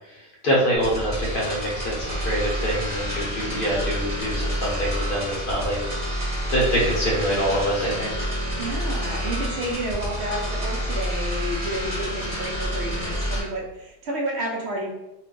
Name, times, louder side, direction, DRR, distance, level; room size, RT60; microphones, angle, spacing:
voice 1, 0.4-5.8 6.3-8.3, equal, 50° left, -4 dB, 0.8 m, -25 dB
sound 1, 0.7-13.4, equal, 35° right, 1.0 m, -28 dB
voice 2, 8.6-14.9, right 1 dB, 65° right, -1 dB, 0.8 m, -30 dB
2.5 x 2.2 x 3.6 m, 0.93 s
omnidirectional pair, 1.3 m